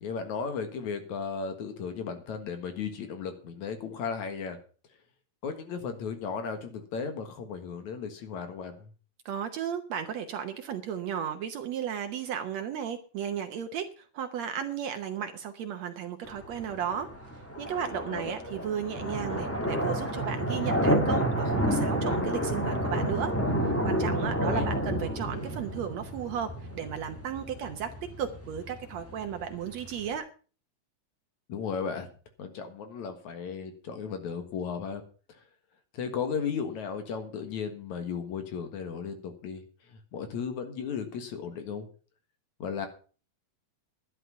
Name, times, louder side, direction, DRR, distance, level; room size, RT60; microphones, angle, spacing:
voice 1, 0.0-4.6 5.4-8.9 18.1-18.3 24.4-24.7 31.5-32.1 32.4-35.0 35.9-39.6 39.9-41.9 42.6-42.9, left 6 dB, 65° left, 8 dB, 2.8 m, -35 dB
voice 2, 9.3-17.1 17.6-23.3 23.6-26.5 26.7-27.9 28.2-30.3, right 8 dB, 65° right, 7 dB, 1.9 m, -34 dB
sound 1, 16.2-30.2, equal, 10° left, 0.6 m, -30 dB
11.5 x 11.0 x 5.6 m, 0.38 s
omnidirectional pair, 3.8 m